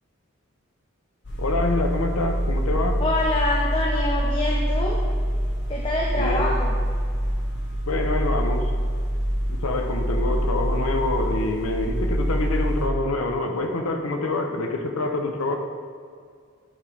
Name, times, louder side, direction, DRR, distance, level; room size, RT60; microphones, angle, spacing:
sound 1, 1.2-12.9, equal, 55° left, 0.9 m, -25 dB
voice 1, 1.4-3.0 6.2-6.5 7.9-8.7 9.5-15.6, left 2 dB, 90° left, 4 dB, 0.6 m, -26 dB
voice 2, 3.0-5.0 5.7-6.8, left 2 dB, 25° left, -2 dB, 0.4 m, -26 dB
8.7 x 3.8 x 3.2 m, 2.2 s
head